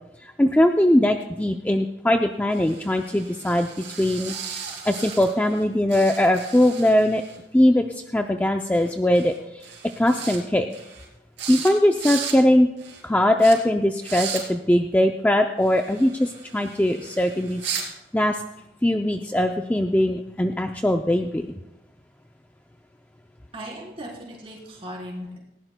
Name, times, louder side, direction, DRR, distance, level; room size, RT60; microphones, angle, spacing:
voice 1, 0.2-7.2 7.5-7.8 8.1-9.7 10.0-10.7 11.5-12.7 13.0-18.4 18.8-21.6, left 1 dB, 10° left, 4 dB, 0.4 m, -21 dB
sound 1, 2.5-5.6 5.9-7.4 8.7-8.9 9.1-9.4 9.6-10.4 10.7-11.1 11.4-11.7 12.0-12.4 12.8-13.0 13.4-13.6 14.0-14.4 15.6-17.9, right 7 dB, 75° right, 3.3 m, -36 dB
voice 2, 23.5-25.4, equal, 30° right, -3 dB, 3.9 m, -37 dB
19.0 x 16.5 x 2.2 m, 0.92 s
head